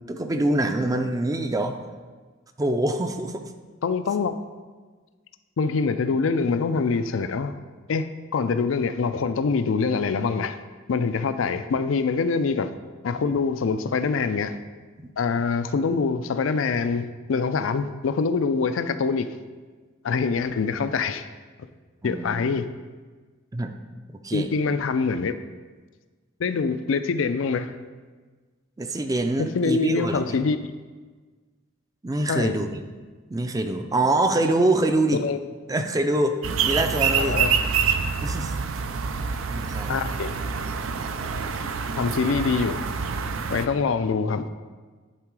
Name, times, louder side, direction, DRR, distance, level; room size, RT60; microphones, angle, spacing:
voice 1, 0.1-1.8 2.6-3.5 13.2-13.4 15.0-15.1 22.0-22.4 23.5-23.7 24.2-24.5 28.8-30.3 32.0-32.8 33.3-35.2 35.7-36.4 36.6-37.4 38.2-38.5 39.5-39.9, right 2 dB, 20° right, 6 dB, 0.4 m, -25 dB
voice 2, 3.8-4.4 5.6-7.6 7.9-8.1 8.3-10.6 10.9-12.7 13.0-14.5 15.2-19.3 20.0-21.2 22.0-22.7 24.3-25.4 26.4-27.7 29.4-30.6 32.3-32.7 35.2-35.4 37.2-37.5 39.9-40.3 42.0-42.8 43.5-44.5, left 4 dB, 75° left, 11 dB, 0.4 m, -24 dB
sound 1, 36.4-43.7, right 6 dB, 90° right, 0.5 m, -26 dB
10.5 x 3.8 x 4.7 m, 1.4 s
head